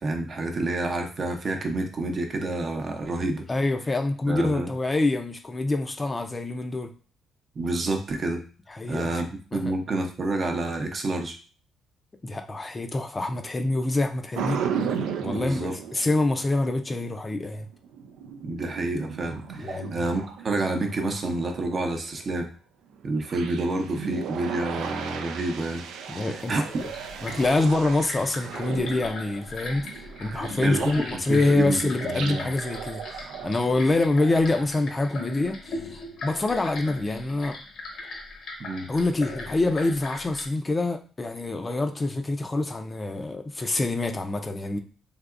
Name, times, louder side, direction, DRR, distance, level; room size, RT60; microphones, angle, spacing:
voice 1, 0.0-3.5 4.3-4.7 7.5-8.4 8.9-11.3 15.3-15.7 18.4-22.5 23.0-25.8 26.1-26.7 30.6-32.5 38.6-38.9, right 2 dB, 45° right, 4 dB, 0.7 m, -29 dB
voice 2, 3.5-6.9 8.7-9.1 9.5-9.7 12.2-14.6 15.2-17.7 19.6-20.0 26.1-26.9 27.2-29.9 30.2-35.6 35.9-37.6 38.9-44.8, left 2 dB, 25° left, 6 dB, 0.4 m, -26 dB
sound 1, 14.3-16.9 17.4-22.4 22.9-31.6 31.8-34.0, right 7 dB, 85° right, 0.3 m, -36 dB
sound 2, 26.8-40.5, left 2 dB, 65° left, 0.8 m, -38 dB
3.4 x 2.8 x 2.5 m, 0.38 s
cardioid pair, 85°, 0 cm